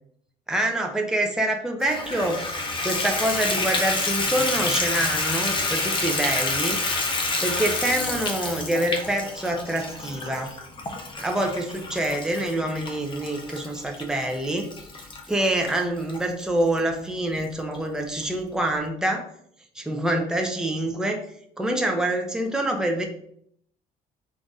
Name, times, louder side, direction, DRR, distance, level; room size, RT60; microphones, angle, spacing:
voice 1, 0.5-2.5 2.8-6.8 7.4-10.6 11.2-14.7 15.3-19.3 19.8-21.2 21.6-23.1, right 1 dB, 5° right, 3 dB, 0.6 m, -26 dB
Water tap faucet / Bathtub (filling or washing), 1.8-16.2 16.8-16.9 17.4-17.5 17.7-17.8, left 3 dB, 30° left, 0.8 m, -28 dB
3.9 x 2.5 x 4.6 m, 0.69 s
cardioid pair, 110°, 17 cm